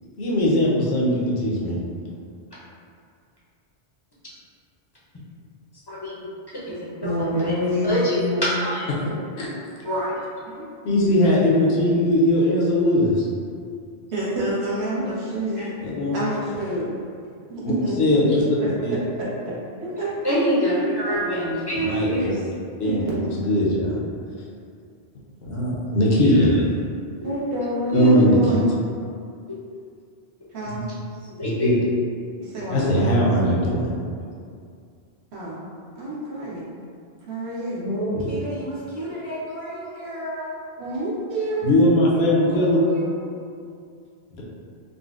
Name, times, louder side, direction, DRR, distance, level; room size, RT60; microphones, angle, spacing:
voice 1, 0.2-1.8 9.4-9.5 10.8-13.1 15.8-16.2 17.6-17.7 18.0-18.4 18.8-19.0 21.8-22.3 22.8-24.0 25.4-26.6 27.9-28.6 30.8-30.9 31.4-31.7 32.7-33.9 41.6-42.8 44.3-44.4, left 1 dB, 75° left, -4 dB, 0.9 m, -20 dB
voice 2, 5.9-6.3 6.7-7.1 7.8-8.2 8.6-8.9 9.8-10.1 15.6-15.7 20.2-21.7 22.1-22.3 27.9-28.2 31.3-31.7, equal, 30° left, -9 dB, 0.5 m, -25 dB
voice 3, 7.0-8.5 10.5-10.6 14.1-15.7 16.1-16.8 17.5-17.9 18.3-18.7 19.8-20.1 20.8-22.1 22.8-23.2 24.3-24.4 27.2-28.6 30.5-30.8 32.4-33.2 35.3-35.6 36.0-36.6 37.3-37.9 40.8-41.7, right 1 dB, 85° right, -8 dB, 1.1 m, -27 dB
voice 4, 37.8-40.5 42.2-43.2, equal, 45° right, -9 dB, 0.4 m, -32 dB
3.8 x 2.1 x 2.4 m, 2.3 s
omnidirectional pair, 1.1 m